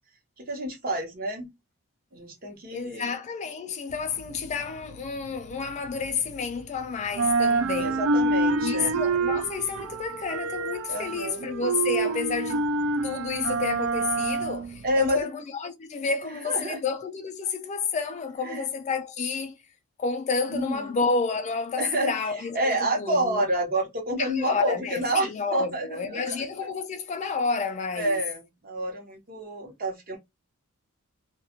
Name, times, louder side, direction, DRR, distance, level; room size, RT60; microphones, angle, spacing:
voice 1, 0.4-1.5 2.1-3.1 7.8-9.1 10.9-11.5 14.8-15.2 16.4-16.8 18.4-18.7 20.5-21.0 21.8-22.1 22.5-26.4 28.0-30.2, right 1 dB, 40° right, 0.9 m, -29 dB
voice 2, 2.7-8.1 8.6-12.7 13.0-19.6 20.0-23.4 24.2-28.2, left 5 dB, 30° left, 0.3 m, -30 dB
sound 1, 3.9-6.8 7.0-15.2, right 3 dB, 65° right, 0.3 m, -27 dB
2.3 x 2.0 x 2.8 m
head